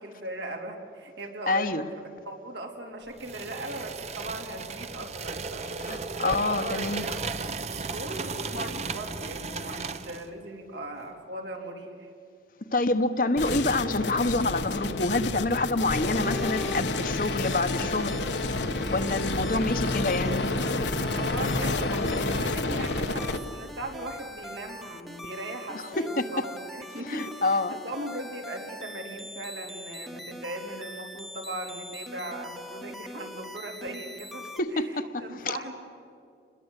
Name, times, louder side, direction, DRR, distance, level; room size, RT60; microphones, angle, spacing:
voice 1, 0.0-5.8 6.2-7.2 7.7-12.1 21.0-35.7, right 1 dB, 75° right, 2 dB, 3.8 m, -38 dB
voice 2, 1.5-1.9 5.8-7.0 12.7-18.2 18.9-20.5 26.2-26.3 27.0-27.8 34.6-35.0 35.3-35.6, left 2 dB, 50° left, 9 dB, 1.1 m, -27 dB
sound 1, 3.2-10.3, right 4 dB, 40° right, 0.9 m, -35 dB
sound 2, 13.4-23.4, left 2 dB, 85° left, 1.5 m, -29 dB
sound 3, 16.2-34.6, left 1 dB, ahead, 1.0 m, -43 dB
28.5 x 21.5 x 8.3 m, 2.4 s
head